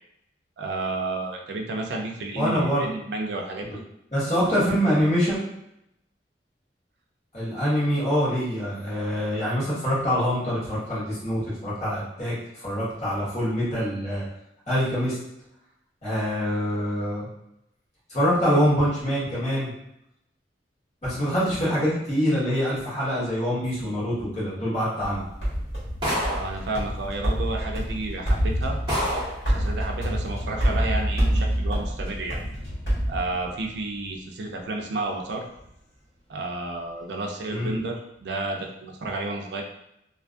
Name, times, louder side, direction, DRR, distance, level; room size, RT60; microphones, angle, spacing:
voice 1, 0.6-3.8 26.3-29.1 29.4-32.4 33.1-35.4 36.3-39.6, right 2 dB, 70° right, 1 dB, 0.4 m, -31 dB
voice 2, 2.3-2.9 4.1-5.4 7.3-14.2 14.7-15.2 16.0-17.3 18.1-19.7 21.0-25.3 37.5-37.8, equal, 40° left, -9 dB, 1.1 m, -25 dB
sound 1, 25.0-33.8, equal, 75° left, 1.3 m, -27 dB
sound 2, 26.0-26.6 27.6-27.7 28.3-28.4 28.9-29.4, equal, 25° right, 0.9 m, -27 dB
2.5 x 2.3 x 2.5 m, 0.82 s
head